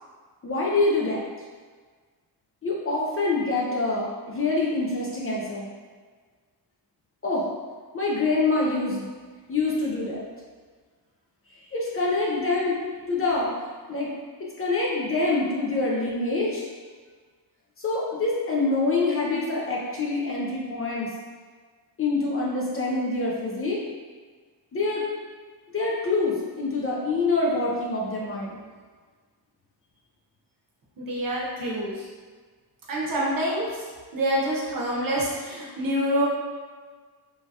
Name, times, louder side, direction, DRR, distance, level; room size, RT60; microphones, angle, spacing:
voice 1, 0.4-1.2 2.6-5.7 7.2-7.5 7.9-9.1 9.5-10.3 11.7-12.8 13.1-13.5 13.9-14.1 14.6-16.7 17.8-21.1 22.0-23.8 24.7-25.1 25.7-28.6, left 3 dB, 35° left, -4 dB, 0.4 m, -25 dB
voice 2, 31.0-32.1 32.9-33.7 34.1-36.3, equal, 50° right, -4 dB, 0.8 m, -26 dB
3.2 x 2.2 x 2.7 m, 1.5 s
wide cardioid pair, 130°, 42 cm